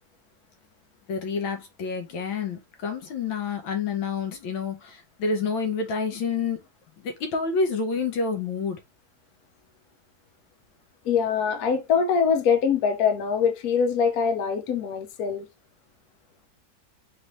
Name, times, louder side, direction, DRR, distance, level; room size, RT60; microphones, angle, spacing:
voice 1, 1.1-6.6 7.0-8.8, left 4 dB, 80° left, 1.7 m, -28 dB
voice 2, 11.0-15.5, left 6 dB, 60° left, 1.1 m, -23 dB
4.1 x 3.3 x 3.1 m
omnidirectional pair, 2.1 m